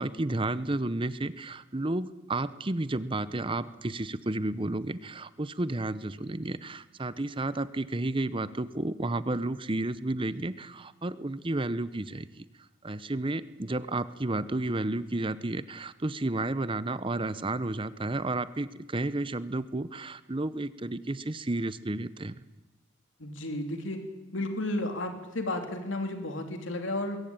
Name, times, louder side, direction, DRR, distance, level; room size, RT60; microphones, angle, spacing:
voice 1, 0.0-12.5 12.8-22.3, right 2 dB, 25° right, 15 dB, 0.7 m, -32 dB
voice 2, 23.2-24.0 24.3-27.2, left 1 dB, 65° left, 5 dB, 3.0 m, -33 dB
22.0 x 16.5 x 8.9 m, 1.1 s
head